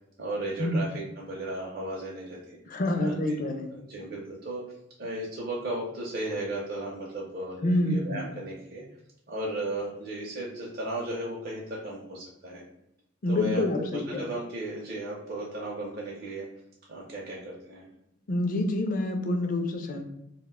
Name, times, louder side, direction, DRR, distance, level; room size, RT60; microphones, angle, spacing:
voice 1, 0.2-2.6 3.0-3.4 3.7-4.6 5.0-8.8 9.3-12.6 13.3-16.5 16.9-17.9, right 1 dB, 50° right, -4 dB, 0.5 m, -35 dB
voice 2, 2.7-3.7 7.6-8.3 13.2-14.2 18.3-20.0, left 1 dB, 45° left, 4 dB, 0.4 m, -27 dB
2.4 x 2.1 x 3.5 m, 0.84 s
head